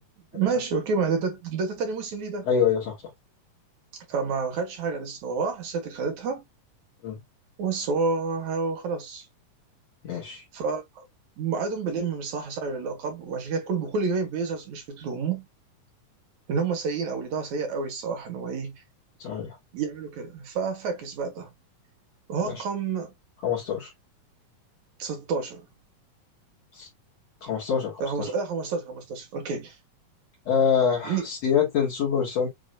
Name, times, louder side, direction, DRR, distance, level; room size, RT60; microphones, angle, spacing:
voice 1, 0.3-2.5 4.1-6.4 7.6-9.3 10.5-11.0 11.4-15.5 16.5-18.7 19.7-21.5 22.3-23.1 25.0-25.7 28.0-29.8 31.0-31.3, right 5 dB, 60° right, 2.6 m, -29 dB
voice 2, 2.4-3.0 7.0-7.2 10.0-10.4 19.2-19.6 22.4-22.6 23.4-23.9 26.7-26.9 27.4-28.3 30.5-32.5, left 7 dB, 55° left, 2.6 m, -25 dB
7.7 x 3.0 x 2.2 m
omnidirectional pair, 3.9 m